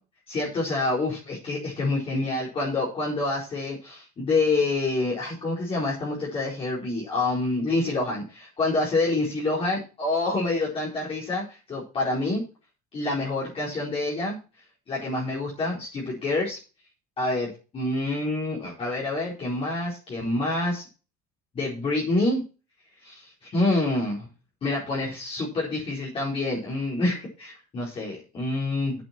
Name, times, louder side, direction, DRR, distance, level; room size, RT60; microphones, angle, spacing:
voice 1, 0.3-12.4 12.9-14.4 14.9-16.6 17.2-20.8 21.5-22.4 23.0-24.3 24.6-29.0, left 2 dB, 30° left, -6 dB, 4.6 m, -27 dB
9.3 x 8.0 x 6.0 m, 0.34 s
cardioid pair, 130°, 18 cm